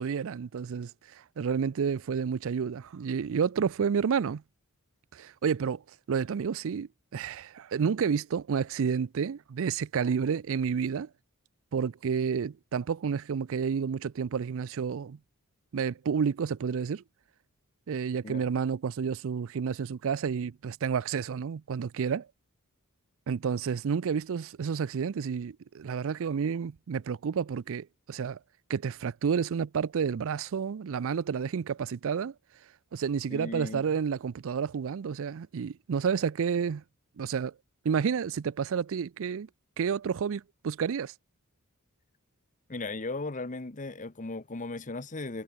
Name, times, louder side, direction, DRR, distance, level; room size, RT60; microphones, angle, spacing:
voice 1, 0.0-4.4 5.1-5.8 6.1-11.1 11.7-15.2 15.7-17.0 17.9-22.3 23.3-28.4 28.7-32.3 32.9-36.8 37.2-37.5 37.8-39.5 39.8-41.1, right 6 dB, 60° right, 0.4 m, -30 dB
voice 2, 33.3-33.8 42.7-45.4, left 3 dB, 35° left, 1.2 m, -36 dB
head